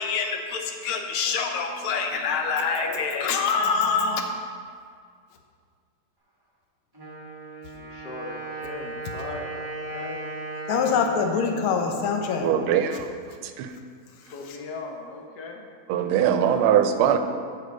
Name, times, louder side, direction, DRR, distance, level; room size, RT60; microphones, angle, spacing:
voice 1, 0.0-4.2 10.7-12.5 14.2-14.3 17.0-17.2, left 5 dB, 80° left, 4 dB, 1.6 m, -25 dB
Wind instrument woodwind instrument, 6.9-12.7, right 2 dB, 20° right, 0.6 m, -37 dB
voice 2, 7.7-10.2 14.3-15.7 16.1-16.7, left 3 dB, 60° left, 2 dB, 1.2 m, -39 dB
voice 3, 12.4-13.1 13.4-13.7 15.9-17.2, right 9 dB, 85° right, 8 dB, 1.4 m, -21 dB
8.2 x 5.0 x 5.1 m, 2.1 s
omnidirectional pair, 2.3 m